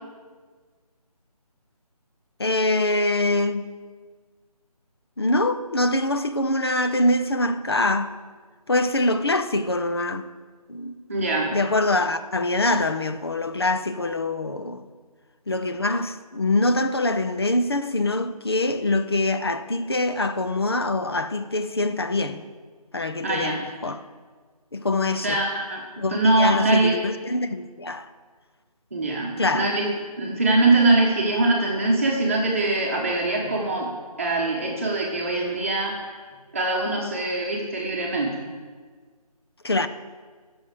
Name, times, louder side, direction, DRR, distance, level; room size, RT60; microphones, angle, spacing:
voice 1, 2.4-3.7 5.2-8.1 8.7-10.2 10.7-11.0 11.5-14.9 15.5-22.4 22.9-24.0 24.7-25.4 26.0-28.1 29.4-29.7 39.6-39.9, left 2 dB, 40° left, 0.6 m, -24 dB
voice 2, 11.1-11.5 23.2-23.6 25.1-25.8 26.1-26.9 28.9-29.8 30.2-33.9 34.2-36.0 36.5-38.3, right 2 dB, 20° right, 1.3 m, -22 dB
18.5 x 7.2 x 4.9 m
figure-of-eight pair, 175°, 20 cm